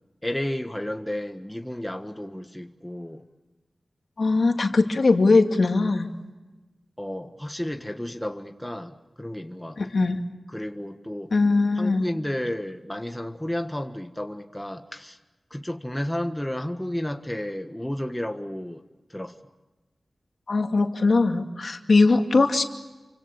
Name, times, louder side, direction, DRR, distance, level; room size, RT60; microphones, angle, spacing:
voice 1, 0.2-3.2 7.0-9.8 10.5-11.3 11.7-15.2 15.5-18.8 19.1-19.3, left 1 dB, 10° left, 5 dB, 1.6 m, -32 dB
voice 2, 4.2-6.1 9.8-10.2 11.3-12.0 20.5-22.6, left 3 dB, 65° left, 4 dB, 2.5 m, -20 dB
29.5 x 25.0 x 7.2 m, 1.1 s
wide cardioid pair, 95°, 0 cm